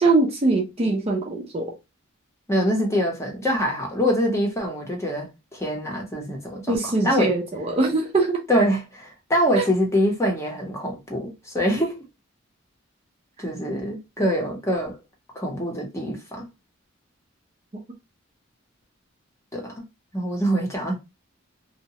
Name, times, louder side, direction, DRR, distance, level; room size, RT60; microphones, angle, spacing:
voice 1, 0.0-1.7 6.7-8.4 9.6-9.7, right 3 dB, 30° right, 0.5 m, -22 dB
voice 2, 2.5-7.3 8.5-12.0 13.4-15.0 15.3-16.5 19.5-19.8 20.1-21.0, equal, 15° left, 0.7 m, -24 dB
2.7 x 2.1 x 2.8 m
head